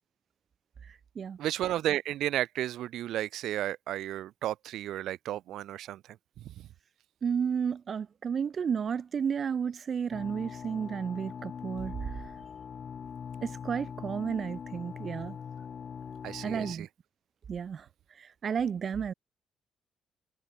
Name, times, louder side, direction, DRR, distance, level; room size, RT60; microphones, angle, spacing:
voice 1, 0.8-1.4 7.2-12.3 13.4-15.4 16.4-16.9 17.5-19.1, right 7 dB, 40° right, 0.5 m, -32 dB
voice 2, 1.4-6.0 6.4-6.7 16.2-16.9, right 13 dB, 75° right, 1.4 m, -33 dB
sound 1, 10.1-16.7, left 7 dB, 40° left, 1.7 m, -42 dB
cardioid pair, 130°, 0 cm